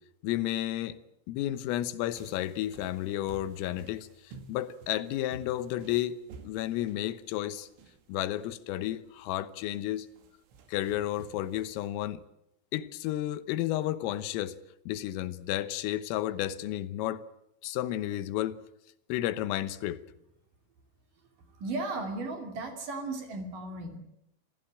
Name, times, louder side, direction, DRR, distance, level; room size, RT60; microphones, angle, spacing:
voice 1, 0.2-1.0 1.3-4.1 4.5-7.7 8.1-10.1 10.7-12.2 12.7-14.6 14.9-17.2 17.6-18.6 19.1-20.0, left 13 dB, 90° left, 3.7 m, -32 dB
sound 1, 2.2-11.9, right 4 dB, 75° right, 4.7 m, -53 dB
voice 2, 21.6-24.0, right 2 dB, 45° right, 3.8 m, -35 dB
27.0 x 16.5 x 8.9 m
omnidirectional pair, 5.8 m